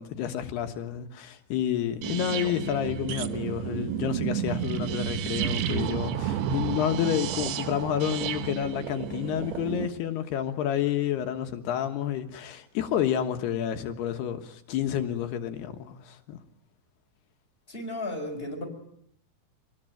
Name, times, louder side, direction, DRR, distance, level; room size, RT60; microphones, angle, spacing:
voice 1, 0.0-16.4, left 10 dB, 75° left, 3.3 m, -29 dB
sound 1, 2.0-9.9, right 10 dB, 80° right, 3.3 m, -31 dB
voice 2, 17.7-18.6, left 1 dB, 15° left, 5.1 m, -34 dB
27.5 x 20.0 x 9.1 m
omnidirectional pair, 4.8 m